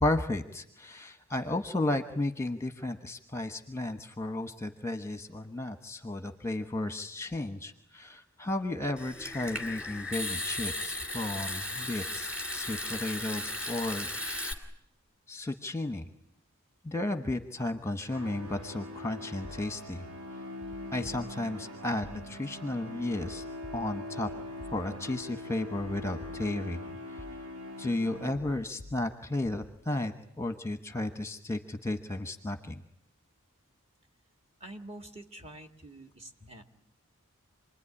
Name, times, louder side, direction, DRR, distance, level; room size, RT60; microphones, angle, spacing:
voice 1, 0.0-14.1 15.3-16.1 16.8-20.1 20.9-23.4 23.7-24.3 24.7-26.8 27.8-32.8, left 2 dB, 10° left, 8 dB, 1.1 m, -33 dB
Water tap faucet / Sink (filling or washing) / Trickle dribble, 9.0-14.5, left 1 dB, 5° right, 2.7 m, -36 dB
sound 1, 18.1-28.8, left 1 dB, 90° right, 1.9 m, -42 dB
sound 2, 20.6-21.7 22.0-22.6 23.2-25.2 25.8-26.8 27.2-27.8 28.3-29.8, left 1 dB, 65° right, 3.1 m, -52 dB
voice 2, 34.6-36.6, right 1 dB, 30° right, 4 dB, 2.2 m, -47 dB
27.5 x 21.0 x 10.0 m, 0.76 s
head